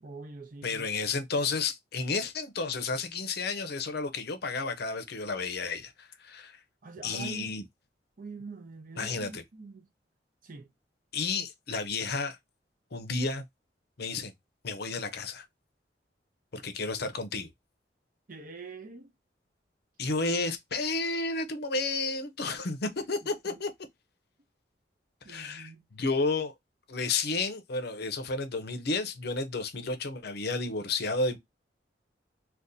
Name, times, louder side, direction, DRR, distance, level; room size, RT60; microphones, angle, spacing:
voice 1, 0.0-0.9 6.8-7.6 8.2-9.9 10.4-10.7 18.3-19.1 23.2-23.6 25.2-25.8, right 4 dB, 50° right, 0.6 m, -44 dB
voice 2, 0.6-6.6 7.0-7.6 9.0-9.4 11.1-12.4 12.9-13.4 14.0-14.3 14.6-15.4 16.5-17.5 20.0-23.7 25.3-26.5 26.9-31.4, left 3 dB, 60° left, 0.6 m, -32 dB
2.6 x 2.3 x 3.6 m
head